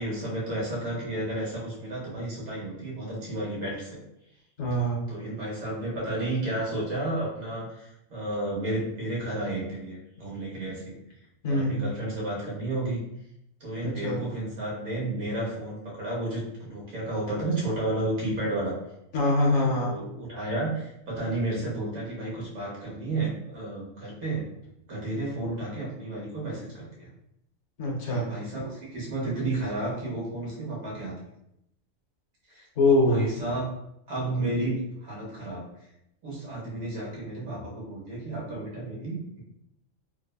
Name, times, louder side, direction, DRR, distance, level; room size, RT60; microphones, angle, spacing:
voice 1, 0.0-4.0 5.1-10.9 11.5-13.0 13.6-18.8 19.6-24.4 24.9-27.1 28.1-31.1 32.5-33.7 34.1-35.6 36.2-39.4, right 2 dB, 85° right, -4 dB, 1.4 m, -32 dB
voice 2, 4.6-5.0 11.4-11.7 14.0-14.2 19.1-19.9 27.8-28.3 32.8-33.3, left 1 dB, 65° left, -2 dB, 1.0 m, -23 dB
3.3 x 2.0 x 2.2 m, 0.80 s
omnidirectional pair, 1.4 m